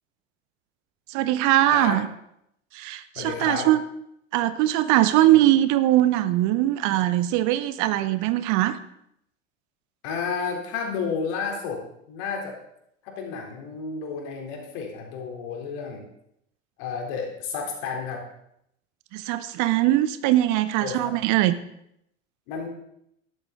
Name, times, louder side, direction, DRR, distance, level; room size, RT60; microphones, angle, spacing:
voice 1, 1.1-2.1 2.7-3.8 4.3-8.8 19.1-21.5, right 14 dB, 50° right, 14 dB, 0.9 m, -21 dB
voice 2, 3.2-3.7 10.0-11.8 12.1-12.6 13.0-16.1 16.8-18.2 20.8-21.1 22.5-22.7, left 5 dB, 60° left, 1 dB, 3.6 m, -31 dB
13.0 x 12.0 x 3.8 m, 0.75 s
figure-of-eight pair, 75°, 37 cm